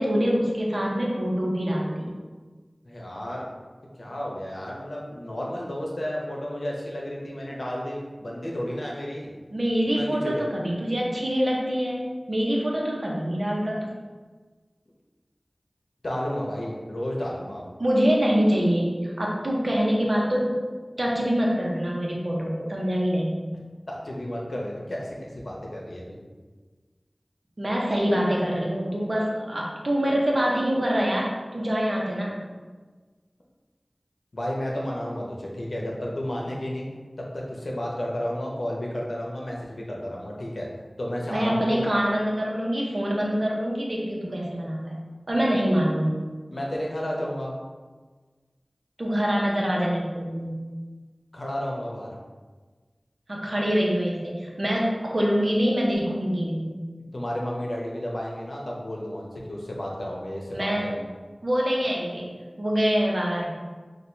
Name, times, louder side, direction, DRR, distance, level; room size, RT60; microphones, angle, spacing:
voice 1, 0.0-2.1 9.5-13.9 17.8-20.5 21.0-23.3 27.6-32.4 41.3-45.0 45.3-46.3 49.0-50.6 53.3-56.7 60.5-60.8 61.4-63.5, equal, 55° right, -3 dB, 0.9 m, -25 dB
voice 2, 2.8-3.5 4.0-9.3 9.9-10.4 16.0-17.7 23.9-26.2 34.3-36.9 37.2-40.7 41.0-41.9 46.5-47.6 51.3-52.2 57.0-61.0, equal, 80° left, -3 dB, 0.8 m, -32 dB
6.1 x 2.5 x 2.7 m, 1.4 s
wide cardioid pair, 45°, 0 cm